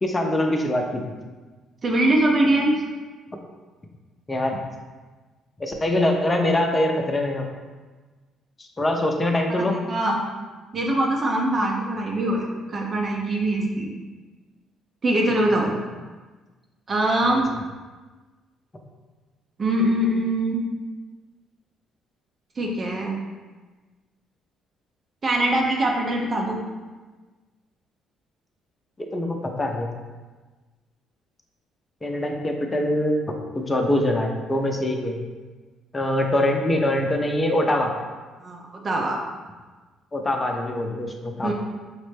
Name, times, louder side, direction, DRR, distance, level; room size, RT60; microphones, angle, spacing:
voice 1, 0.0-1.0 4.3-4.6 5.6-7.4 8.6-9.8 29.0-29.9 32.0-33.2 33.5-35.1 35.9-37.9 40.1-41.5, left 1 dB, 25° left, 2 dB, 0.6 m, -23 dB
voice 2, 1.8-2.8 9.5-10.2 10.7-13.9 15.0-15.7 16.9-17.4 19.6-20.6 22.6-23.2 25.2-26.6 38.4-39.2 41.4-41.5, right 1 dB, 45° right, -1 dB, 0.6 m, -23 dB
5.1 x 2.0 x 3.2 m, 1.3 s
hypercardioid pair, 50°, 0 cm